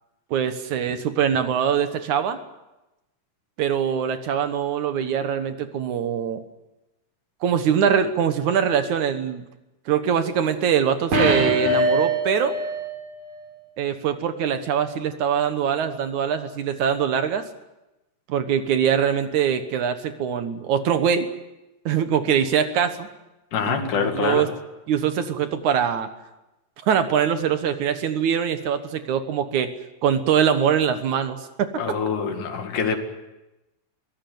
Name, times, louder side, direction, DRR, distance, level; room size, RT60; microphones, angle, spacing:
voice 1, 0.3-2.4 3.6-6.4 7.4-9.4 9.9-12.6 13.8-17.4 18.3-21.3 21.9-23.1 23.7-24.5 24.9-26.1 26.9-29.7 30.0-31.7, right 8 dB, 65° right, 9 dB, 2.5 m, -23 dB
sound 1, 11.1-13.0 13.3-13.4, right 1 dB, 85° right, 5.4 m, -22 dB
voice 2, 23.5-24.5 31.8-33.0, left 6 dB, 70° left, 5 dB, 3.6 m, -25 dB
23.5 x 16.5 x 9.4 m, 1.0 s
omnidirectional pair, 3.8 m